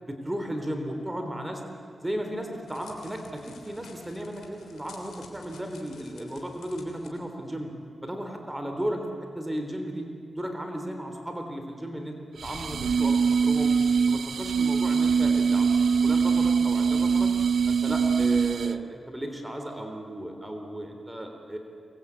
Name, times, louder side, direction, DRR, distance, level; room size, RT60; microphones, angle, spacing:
voice 1, 0.0-1.6 2.0-7.7 8.0-10.1 10.4-12.2 12.4-13.7 14.1-17.3 17.7-21.6, equal, 15° right, 4 dB, 3.6 m, -35 dB
Crackle, 2.1-7.1, left 5 dB, 90° left, 3.4 m, -52 dB
sound 1, 12.4-18.9, right 5 dB, 80° right, 0.6 m, -23 dB
24.5 x 20.0 x 8.5 m, 2.4 s
cardioid pair, 50°, 0 cm